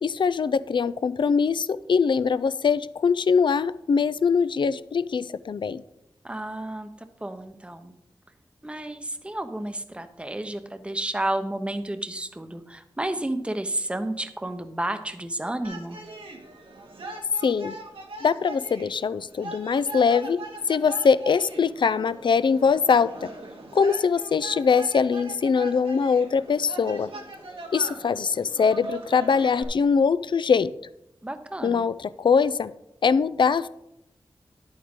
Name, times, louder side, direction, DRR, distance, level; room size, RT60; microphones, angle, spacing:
voice 1, 0.0-5.8 17.4-17.8 18.2-20.4 20.7-23.3 23.7-27.1 27.7-30.7 31.6-32.7 33.0-33.7, left 5 dB, 60° left, 15 dB, 0.4 m, -22 dB
voice 2, 6.2-6.9 7.2-7.9 8.6-16.0 31.2-31.9, right 1 dB, 10° right, 9 dB, 0.7 m, -31 dB
sound 1, 15.6-29.6, right 2 dB, 80° right, 1.8 m, -41 dB
11.0 x 8.7 x 3.7 m, 0.83 s
wide cardioid pair, 105°, 9 cm